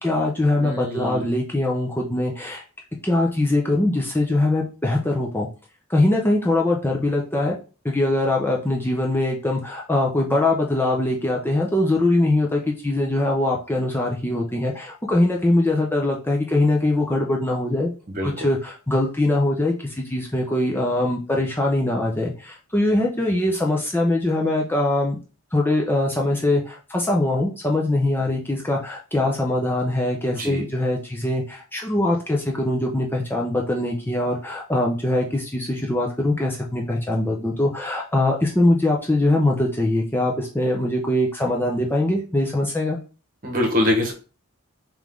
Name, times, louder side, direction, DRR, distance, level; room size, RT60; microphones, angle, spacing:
voice 1, 0.0-2.6 3.0-5.5 5.9-7.5 7.8-17.9 18.2-25.2 25.5-43.0, left 1 dB, 10° left, -1 dB, 0.5 m, -22 dB
voice 2, 0.6-1.3 18.1-18.4 30.3-30.6 43.4-44.1, left 1 dB, 40° right, 1 dB, 1.1 m, -24 dB
3.7 x 3.1 x 3.5 m, 0.34 s
head